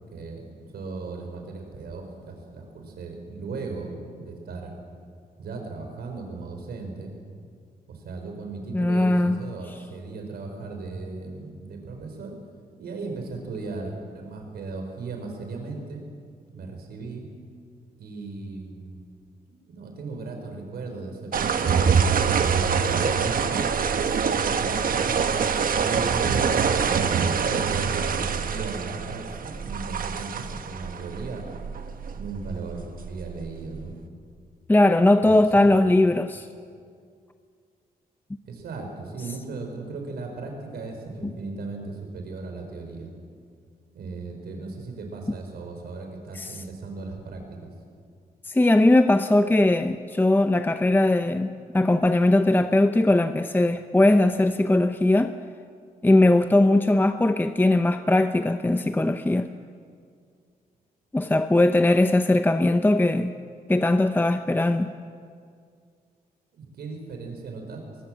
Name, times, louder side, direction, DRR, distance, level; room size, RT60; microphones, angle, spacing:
voice 1, 0.1-4.7 5.4-7.1 7.9-12.3 12.8-16.0 16.5-17.2 18.0-19.0 19.7-21.9 22.4-23.7 24.4-31.4 32.1-33.9 35.2-35.3 38.4-43.1 43.9-47.7 66.6-67.8, right 3 dB, 90° right, 3 dB, 4.7 m, -37 dB
voice 2, 8.7-9.4 34.7-36.5 41.2-41.3 46.4-46.6 48.5-55.3 56.0-59.5 61.1-63.4 63.7-64.9, left 2 dB, 10° left, 9 dB, 0.7 m, -20 dB
sound 1, 21.3-33.9, right 6 dB, 65° right, 1.3 m, -25 dB
22.5 x 21.0 x 7.5 m, 2.2 s
cardioid pair, 85°, 16 cm